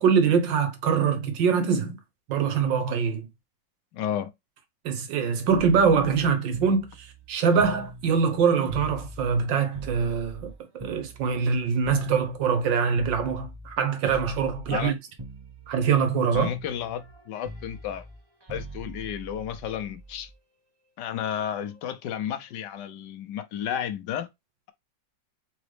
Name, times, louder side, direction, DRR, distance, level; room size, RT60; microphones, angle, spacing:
voice 1, 0.0-2.0 2.3-3.3 4.8-15.0 15.7-16.5, right 6 dB, 85° right, 1.7 m, -24 dB
voice 2, 3.9-4.3 14.7-14.9 16.3-18.1 18.5-20.3 21.0-24.3, left 9 dB, 75° left, 1.3 m, -32 dB
sound 1, 5.5-9.4 9.7-13.8 14.1-14.9 15.2-16.1 16.3-20.3 21.5-21.8, right 1 dB, 20° right, 0.7 m, -42 dB
4.0 x 3.8 x 3.2 m
omnidirectional pair, 2.0 m